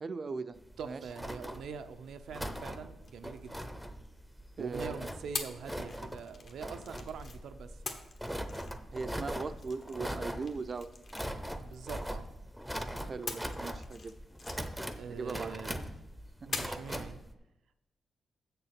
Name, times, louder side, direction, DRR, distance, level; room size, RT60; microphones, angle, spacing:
voice 1, 0.0-0.6 0.8-1.0 4.6-5.0 8.9-10.9 13.1-14.1 15.1-15.6 16.4-16.5, right 4 dB, 40° right, 11 dB, 0.5 m, -39 dB
sound 1, 0.6-17.3, equal, ahead, 0.6 m, -41 dB
voice 2, 0.8-3.8 4.6-8.0 11.6-12.3 15.0-15.8 16.5-17.2, right 6 dB, 85° right, 9 dB, 0.6 m, -44 dB
sound 2, 3.0-4.5 5.3-7.4 7.9-12.5 13.3-15.8 16.5-17.0, left 4 dB, 55° left, 1.1 m, -45 dB
7.6 x 6.8 x 5.9 m, 0.98 s
cardioid pair, 115°, 0 cm